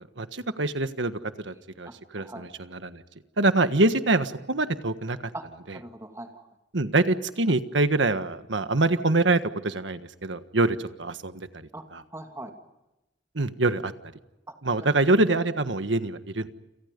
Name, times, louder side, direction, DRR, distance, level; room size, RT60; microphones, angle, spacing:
voice 1, 0.2-3.0 3.4-5.3 5.7-5.8 6.7-12.0 13.3-13.9 14.6-16.5, right 2 dB, 90° right, 10 dB, 1.5 m, -25 dB
voice 2, 1.9-2.4 5.3-5.4 5.7-6.5 11.7-11.8 12.1-12.5 14.5-14.9, right 2 dB, 15° right, 4 dB, 2.5 m, -41 dB
29.0 x 27.5 x 5.3 m, 0.98 s
head